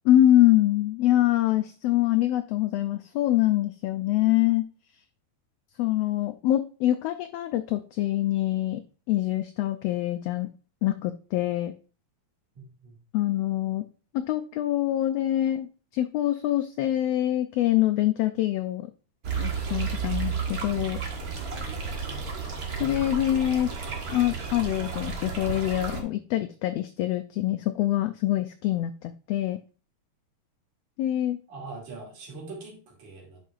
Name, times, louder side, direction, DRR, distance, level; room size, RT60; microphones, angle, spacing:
voice 1, 0.0-4.7 5.8-8.8 9.1-10.5 10.8-11.7 13.1-13.8 14.3-18.9 19.4-21.0 22.8-23.7 24.1-29.6 31.0-31.4, left 14 dB, 85° left, 9 dB, 1.4 m, -25 dB
voice 2, 12.6-13.0 22.1-22.2 31.5-33.4, right 3 dB, 80° right, -1 dB, 3.8 m, -42 dB
sound 1, 19.2-26.0, right 5 dB, 45° right, 1.3 m, -32 dB
10.0 x 5.5 x 2.4 m, 0.37 s
omnidirectional pair, 3.4 m